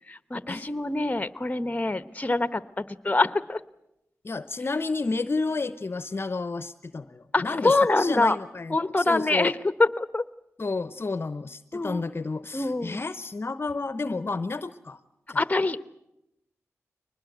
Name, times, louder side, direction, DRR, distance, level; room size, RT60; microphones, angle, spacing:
voice 1, 0.1-3.6 7.3-8.4 8.7-10.2 11.7-12.0 12.5-13.0 15.3-15.8, left 2 dB, 25° left, 14 dB, 1.0 m, -25 dB
voice 2, 4.2-9.5 10.6-15.0 15.3-15.4, left 3 dB, 45° left, 13 dB, 0.8 m, -31 dB
22.5 x 20.0 x 8.0 m, 0.86 s
cardioid pair, 45°, 5 cm